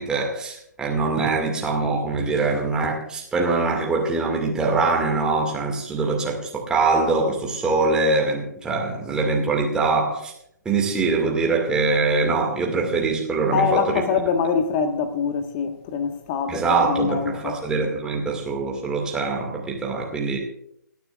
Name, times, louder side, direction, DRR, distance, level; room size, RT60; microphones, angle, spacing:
voice 1, 0.0-10.3 10.7-14.0 16.5-20.4, right 3 dB, 5° right, 2.1 m, -23 dB
voice 2, 13.5-17.6, left 6 dB, 30° left, 1.5 m, -24 dB
29.0 x 10.5 x 2.5 m
figure-of-eight pair, 140°, 10 cm